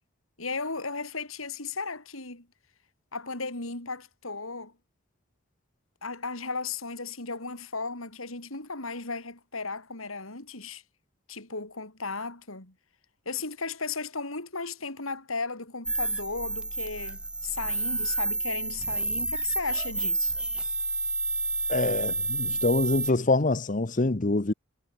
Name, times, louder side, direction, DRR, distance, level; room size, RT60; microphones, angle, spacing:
voice 1, 0.4-2.5 3.1-4.7 6.0-10.8 11.3-12.7 13.3-20.3, left 4 dB, 90° left, 5.4 m, -35 dB
sound 1, 15.9-23.1, right 2 dB, 5° right, 0.3 m, -30 dB
voice 2, 21.7-24.5, left 2 dB, 40° left, 1.0 m, -25 dB
head